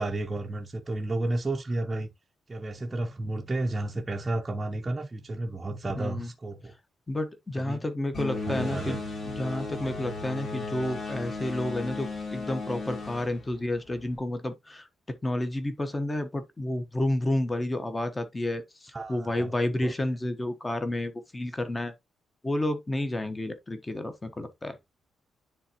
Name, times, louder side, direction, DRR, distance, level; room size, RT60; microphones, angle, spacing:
voice 1, 0.0-2.1 2.5-6.7 7.6-7.8 8.5-9.0 18.9-19.5 19.8-19.9, right 2 dB, 20° right, 0.7 m, -32 dB
voice 2, 5.9-6.3 7.1-9.0 9.2-21.9 22.4-24.8, left 1 dB, 15° left, 1.0 m, -30 dB
sound 1, 8.1-14.2, left 3 dB, 40° left, 3.0 m, -35 dB
10.0 x 3.5 x 2.9 m
wide cardioid pair, 155°, 0 cm